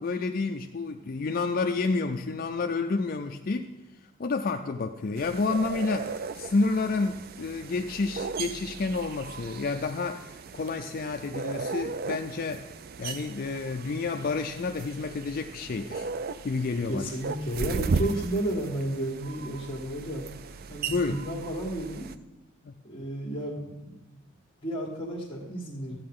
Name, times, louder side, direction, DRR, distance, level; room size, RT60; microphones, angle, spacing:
voice 1, 0.0-3.7 4.2-12.6 13.0-16.1 16.4-17.1 20.9-21.2 22.6-22.7, left 3 dB, 40° left, 6 dB, 0.4 m, -30 dB
sound 1, 5.2-22.2, right 5 dB, 45° right, 0.3 m, -36 dB
voice 2, 16.9-20.3 20.7-22.1 22.8-24.2 24.6-26.0, right 1 dB, 25° left, -4 dB, 1.4 m, -32 dB
13.0 x 8.6 x 3.7 m, 1.0 s
head